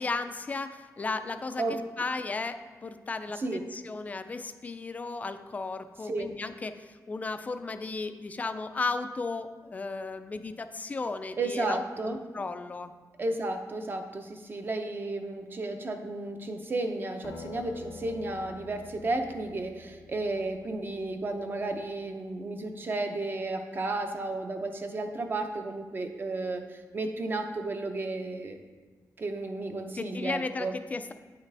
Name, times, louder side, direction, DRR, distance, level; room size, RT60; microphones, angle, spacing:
voice 1, 0.0-12.9 30.0-31.1, left 3 dB, 25° left, 10 dB, 0.3 m, -35 dB
voice 2, 11.4-12.2 13.2-28.6 29.2-30.8, right 2 dB, 30° right, 6 dB, 0.6 m, -33 dB
Acoustic guitar, 17.2-22.1, left 4 dB, 65° left, 0.7 m, -48 dB
8.9 x 5.7 x 3.3 m, 1.4 s
wide cardioid pair, 170°, 7 cm